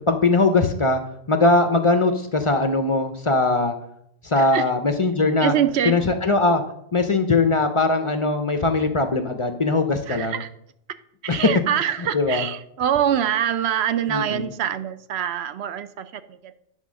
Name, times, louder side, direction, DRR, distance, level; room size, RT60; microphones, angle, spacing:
voice 1, 0.1-1.0 1.3-3.7 4.2-5.5 5.8-6.6 6.9-10.4 11.3-11.5 12.0-12.5 14.1-14.5, left 3 dB, 40° left, 7 dB, 0.4 m, -20 dB
voice 2, 5.4-6.0 10.1-10.5 11.2-16.1, right 9 dB, 65° right, 13 dB, 0.8 m, -24 dB
9.2 x 3.8 x 6.2 m, 0.75 s
omnidirectional pair, 1.2 m